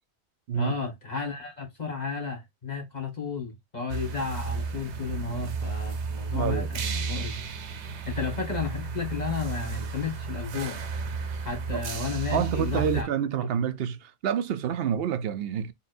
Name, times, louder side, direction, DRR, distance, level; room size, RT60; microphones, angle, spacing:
voice 1, 0.5-7.4 8.1-10.8 11.4-13.1, left 5 dB, 40° left, 1.7 m, -33 dB
sound 1, 3.9-13.0, right 5 dB, 85° right, 1.1 m, -33 dB
voice 2, 6.3-6.7 11.3-11.4 11.7-11.8 12.3-15.7, right 8 dB, 65° right, 0.8 m, -28 dB
4.1 x 3.8 x 2.5 m
omnidirectional pair, 1.1 m